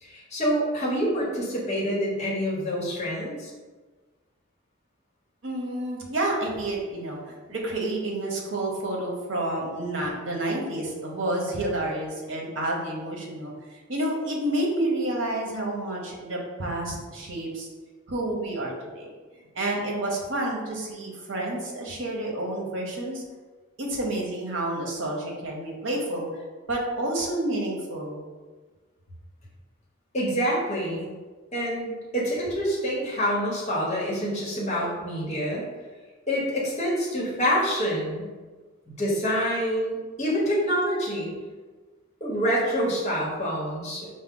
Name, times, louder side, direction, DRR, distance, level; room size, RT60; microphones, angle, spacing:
voice 1, 0.0-3.5 30.1-31.0 31.5-35.6 36.3-38.3 38.9-41.3 42.2-44.1, equal, 30° left, -6 dB, 1.1 m, -26 dB
voice 2, 5.4-13.5 13.9-17.7 18.1-19.1 19.5-23.2 23.8-26.3 26.7-28.2, right 1 dB, 65° right, -1 dB, 0.8 m, -29 dB
4.8 x 2.1 x 3.7 m, 1.3 s
head